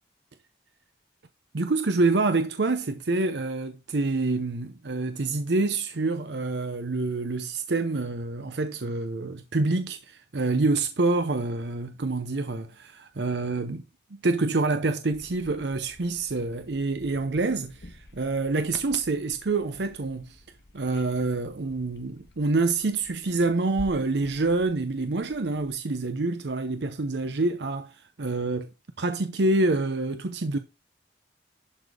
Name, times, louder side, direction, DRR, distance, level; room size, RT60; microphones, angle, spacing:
voice 1, 1.5-13.8 14.1-20.4 20.7-28.7 29.0-30.6, right 3 dB, 80° right, 0.7 m, -27 dB
sound 1, 15.1-25.8, left 1 dB, 75° left, 1.5 m, -50 dB
11.5 x 4.1 x 4.8 m
head